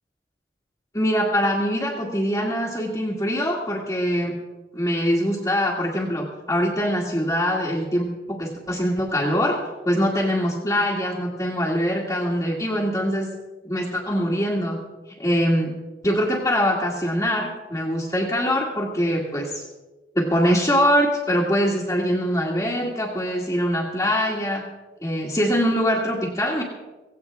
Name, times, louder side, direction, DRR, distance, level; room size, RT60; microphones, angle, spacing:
voice 1, 0.9-4.3 4.7-9.6 9.9-13.3 13.6-14.8 15.2-15.8 16.0-19.6 20.2-24.6 25.0-26.6, equal, 20° left, -6 dB, 1.9 m, -23 dB
17.0 x 17.0 x 3.5 m, 1.1 s
head